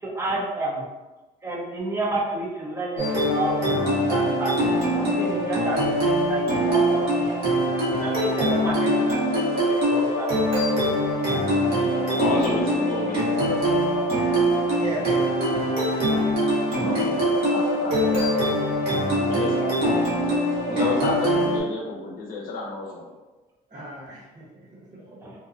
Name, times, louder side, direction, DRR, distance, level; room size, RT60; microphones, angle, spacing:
voice 1, 0.0-0.8 1.4-4.5 4.9-7.4 8.0-10.6 16.7-17.6 20.7-20.9 25.2-25.3, right 2 dB, 15° right, -4 dB, 0.7 m, -31 dB
sound 1, 3.0-21.6, equal, 75° right, 1.2 m, -23 dB
voice 2, 11.7-14.2 15.9-16.4 16.8-18.4 19.2-20.4 20.7-23.1 24.9-25.1, left 3 dB, 55° left, -2 dB, 0.7 m, -31 dB
voice 3, 14.8-15.3 23.7-24.8, right 1 dB, 50° right, -7 dB, 1.2 m, -35 dB
2.7 x 2.2 x 2.5 m, 1.1 s
cardioid pair, 110°, 17 cm